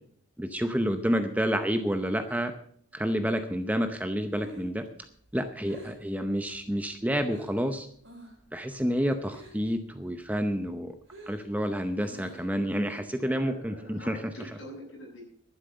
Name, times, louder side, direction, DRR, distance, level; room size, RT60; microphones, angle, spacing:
voice 1, 0.4-2.5 2.9-4.8 5.3-7.9 8.5-10.9 11.3-14.2, equal, 5° right, 8 dB, 0.6 m, -29 dB
Breathing, 4.3-7.7 8.0-8.5 8.7-9.8 10.1-12.7, right 1 dB, 60° right, 5.7 m, -49 dB
voice 2, 13.1-15.2, equal, 60° left, -2 dB, 7.0 m, -44 dB
11.5 x 9.9 x 6.7 m, 0.63 s
head